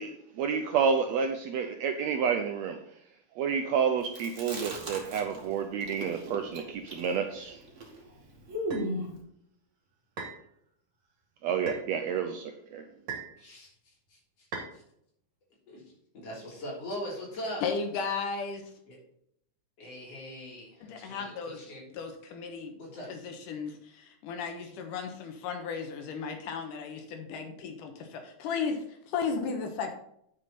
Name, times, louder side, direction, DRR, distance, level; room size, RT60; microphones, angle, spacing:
voice 1, 0.0-2.8 3.3-7.6 11.4-12.8, right 6 dB, 75° right, 1.6 m, -29 dB
Chewing mastication, 4.0-5.5 5.8-9.2, equal, 30° right, 1.7 m, -37 dB
sound 1, 8.7-8.9 10.2-10.4 11.7-11.9 13.1-13.4 14.5-14.7, right 4 dB, 55° right, 3.4 m, -38 dB
voice 2, 13.4-14.8 15.7-17.6 18.9-19.0 19.8-21.8 22.8-23.1, equal, 50° left, 4.4 m, -41 dB
voice 3, 17.6-18.7 20.9-21.6 21.9-22.8 23.1-29.9, left 5 dB, 80° left, 2.7 m, -35 dB
9.4 x 7.3 x 4.1 m
omnidirectional pair, 3.7 m